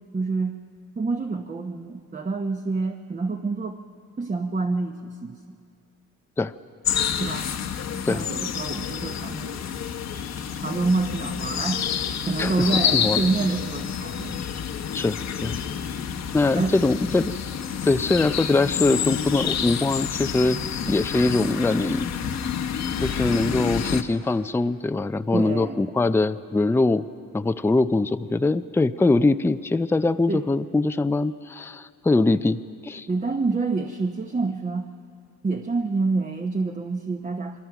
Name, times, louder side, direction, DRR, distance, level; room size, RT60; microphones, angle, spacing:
voice 1, 0.1-0.5 1.0-3.8 4.2-5.4 7.2-7.5 8.0-9.6 10.4-11.8 12.3-14.4 16.6-16.8 25.3-25.9 30.3-30.4 33.1-34.9 35.4-37.6, right 3 dB, 25° right, 4 dB, 1.0 m, -27 dB
sound 1, 6.8-24.0, left 8 dB, 60° left, 1.2 m, -28 dB
voice 2, 12.4-13.2 14.9-15.6 16.3-17.3 17.8-20.6 20.8-22.1 23.0-27.0 27.3-33.1, left 2 dB, 10° left, 11 dB, 0.5 m, -22 dB
27.5 x 22.0 x 6.0 m, 2.4 s
cardioid pair, 90°, 30 cm